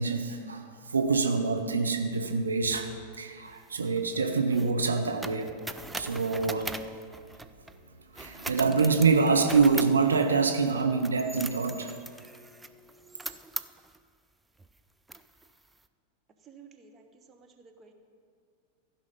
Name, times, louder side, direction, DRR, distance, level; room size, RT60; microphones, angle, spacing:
voice 1, 0.0-2.9 3.2-5.5 6.0-6.7 8.1-11.9, right 4 dB, 75° right, 5 dB, 0.6 m, -26 dB
sound 1, 3.5-7.8 8.1-14.0 14.6-14.7 15.1-15.7, right 2 dB, 5° right, 0.4 m, -41 dB
voice 2, 16.4-17.9, right 5 dB, 25° right, 5 dB, 0.9 m, -54 dB
15.0 x 5.3 x 5.3 m, 2.2 s
figure-of-eight pair, 90°, 0 cm